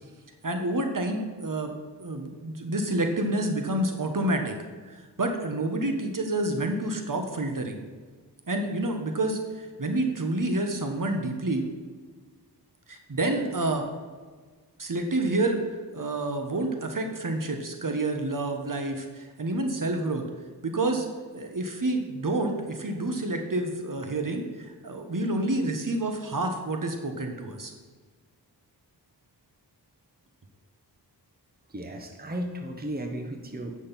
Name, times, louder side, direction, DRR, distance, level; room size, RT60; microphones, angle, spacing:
voice 1, 0.4-1.7 2.0-4.6 4.8-7.8 8.5-11.6 12.9-13.9 14.8-15.6 15.9-20.2 20.6-27.7, right 2 dB, 50° right, 4 dB, 1.4 m, -28 dB
voice 2, 31.7-33.8, right 1 dB, 25° right, 4 dB, 1.1 m, -34 dB
9.0 x 6.2 x 5.8 m, 1.4 s
wide cardioid pair, 55°, 40 cm